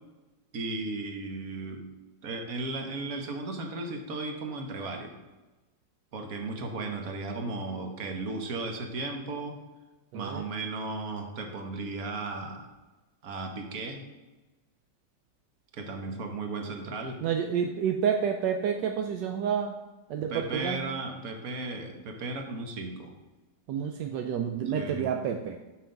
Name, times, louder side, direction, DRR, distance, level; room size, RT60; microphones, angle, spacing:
voice 1, 0.5-1.8 2.2-5.2 6.1-9.6 10.1-12.7 13.2-14.1 15.7-17.2 20.3-23.1 24.8-25.1, right 3 dB, 55° right, 4 dB, 1.5 m, -35 dB
voice 2, 10.1-10.4 17.2-19.8 20.1-20.8 23.7-25.6, right 7 dB, 80° right, 5 dB, 1.2 m, -29 dB
7.0 x 5.8 x 5.1 m, 1.2 s
omnidirectional pair, 1.9 m